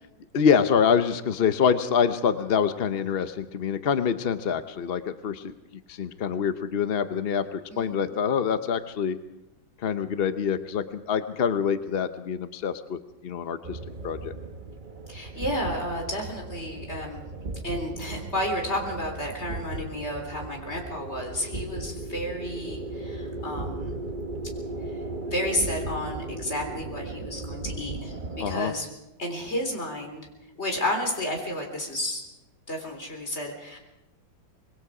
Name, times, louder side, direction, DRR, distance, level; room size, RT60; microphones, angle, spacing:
voice 1, 0.3-5.5 5.9-9.2 9.8-14.3 28.4-28.7, left 7 dB, 60° left, 10 dB, 0.6 m, -26 dB
sound 1, 13.6-28.6, right 2 dB, 30° right, 1.0 m, -36 dB
voice 2, 15.1-17.2 17.6-24.0 24.9-25.0 25.3-28.9 29.2-30.3 30.6-32.2 32.7-33.8, left 1 dB, 35° left, 2 dB, 4.0 m, -31 dB
25.5 x 21.0 x 4.9 m, 0.93 s
omnidirectional pair, 2.1 m